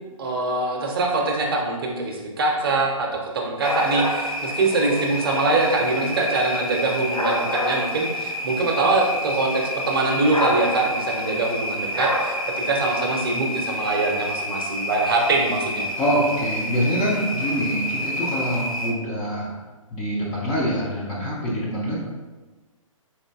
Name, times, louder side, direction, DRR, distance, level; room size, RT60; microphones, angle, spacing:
voice 1, 0.2-12.4 12.7-15.9, right 3 dB, 45° right, 1 dB, 0.6 m, -23 dB
sound 1, 3.6-18.9, left 1 dB, 90° left, 0.6 m, -28 dB
voice 2, 16.0-19.5 19.9-22.0, equal, 15° left, -7 dB, 0.3 m, -25 dB
4.1 x 2.5 x 2.3 m, 1.2 s
figure-of-eight pair, 125°, 18 cm